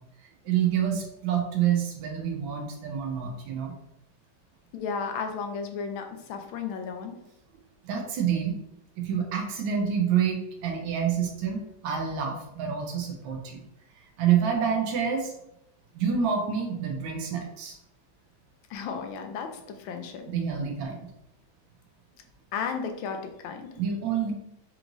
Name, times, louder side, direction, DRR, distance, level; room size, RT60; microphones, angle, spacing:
voice 1, 0.4-3.7 7.8-8.5 9.0-13.6 14.2-15.3 15.9-17.7 20.3-21.0 23.8-24.3, right 8 dB, 90° right, 1 dB, 1.4 m, -27 dB
voice 2, 4.7-7.2 18.7-20.2 22.5-23.7, left 5 dB, 90° left, 5 dB, 1.4 m, -34 dB
4.8 x 3.0 x 2.5 m, 0.81 s
omnidirectional pair, 2.1 m